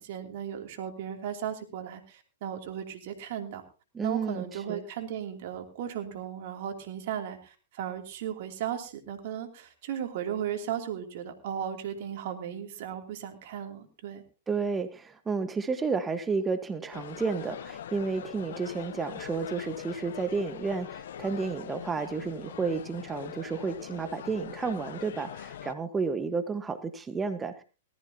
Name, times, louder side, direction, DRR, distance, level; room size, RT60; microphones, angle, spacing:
voice 1, 0.0-3.6 4.0-14.2, right 9 dB, 55° right, 4 dB, 2.8 m, -36 dB
voice 2, 3.9-4.8 14.5-27.6, right 4 dB, 15° right, 9 dB, 1.3 m, -31 dB
sound 1, 16.9-25.7, left 10 dB, 65° left, 0.7 m, -42 dB
18.5 x 14.0 x 2.8 m, 0.34 s
hypercardioid pair, 115°, 0 cm